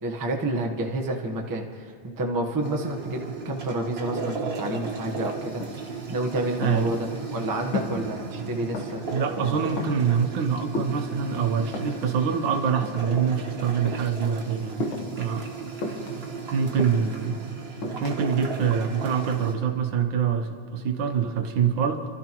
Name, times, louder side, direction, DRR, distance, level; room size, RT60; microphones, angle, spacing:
voice 1, 0.0-5.6 6.1-9.0 9.3-9.6, right 1 dB, 15° right, 0 dB, 0.6 m, -29 dB
sound 1, 2.6-19.5, right 4 dB, 40° right, 1.2 m, -35 dB
sound 2, 4.2-4.3 4.5-5.2 5.6-6.0 6.3-8.1 8.4-9.2 9.5-10.1 10.7-12.1 12.7-13.5 13.7-14.1 14.8-15.2 15.8-17.2 17.8-18.2, left 2 dB, 80° left, 2.2 m, -34 dB
voice 2, 6.6-6.9 9.1-14.9 15.2-15.5 16.5-17.5 18.0-22.1, right 7 dB, 70° right, 6 dB, 1.5 m, -25 dB
30.0 x 13.0 x 3.0 m, 2.2 s
omnidirectional pair, 2.2 m